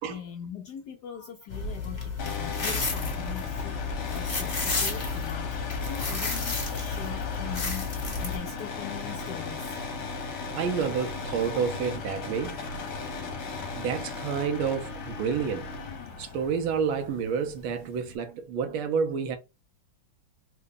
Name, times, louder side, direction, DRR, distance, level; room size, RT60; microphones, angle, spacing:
voice 1, 0.0-9.8, left 8 dB, 80° left, 0.9 m, -41 dB
sound 1, 1.5-8.4, left 4 dB, 30° left, 0.8 m, -32 dB
sound 2, 2.2-18.2, left 4 dB, 60° left, 1.4 m, -37 dB
voice 2, 10.5-12.6 13.8-15.7 16.2-19.4, right 6 dB, 75° right, 1.4 m, -29 dB
3.8 x 2.1 x 3.6 m
omnidirectional pair, 2.3 m